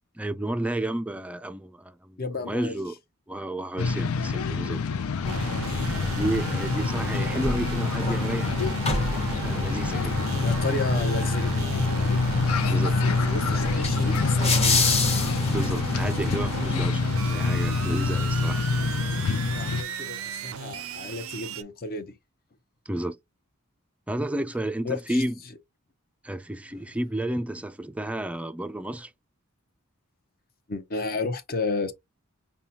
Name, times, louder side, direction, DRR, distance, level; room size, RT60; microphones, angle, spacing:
voice 1, 0.1-2.2 2.5-3.0 3.3-4.8 6.1-10.1 12.7-13.0 15.5-18.6 22.9-23.2 24.1-25.4 26.2-29.1, right 1 dB, 5° right, 0.4 m, -31 dB
voice 2, 2.2-2.8 10.4-12.1 13.0-14.9 19.2-22.2 24.8-25.2 30.7-31.9, left 3 dB, 45° left, 0.8 m, -33 dB
sound 1, 3.8-19.8, left 4 dB, 85° left, 0.4 m, -26 dB
sound 2, 5.2-16.9, left 2 dB, 30° left, 1.1 m, -30 dB
sound 3, 5.3-21.6, right 7 dB, 65° right, 0.4 m, -37 dB
5.4 x 2.2 x 2.8 m
head